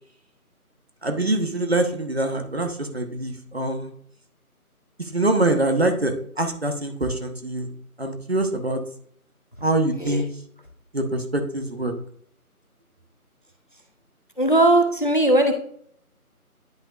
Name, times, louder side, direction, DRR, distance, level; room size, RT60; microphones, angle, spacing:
voice 1, 1.0-3.9 5.0-7.7 8.0-8.8 9.6-10.3 10.9-11.9, right 2 dB, 45° right, 6 dB, 1.2 m, -24 dB
voice 2, 14.4-15.6, right 1 dB, 35° left, 5 dB, 0.9 m, -18 dB
10.5 x 5.6 x 2.5 m, 0.62 s
figure-of-eight pair, 170°, 45 cm